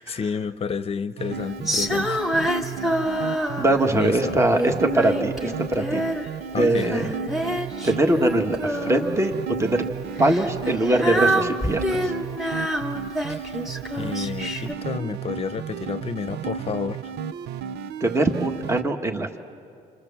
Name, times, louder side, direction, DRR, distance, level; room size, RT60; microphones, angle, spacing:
voice 1, 0.0-2.2 3.9-4.4 6.5-6.9 13.3-13.6 13.9-17.1, left 6 dB, 35° left, 13 dB, 0.9 m, -30 dB
sound 1, 1.2-18.8, right 7 dB, 80° right, 0.7 m, -33 dB
Female singing, 1.7-4.0 4.6-6.3 6.6-9.4 10.2-14.7, equal, ahead, 2.2 m, -27 dB
voice 2, 3.6-6.0 6.6-7.1 7.8-9.3 9.6-9.8 10.2-12.1 14.6-14.7 18.0-19.4, right 2 dB, 15° right, 4 dB, 1.7 m, -22 dB
28.5 x 27.0 x 7.2 m, 2.5 s
cardioid pair, 110°, 17 cm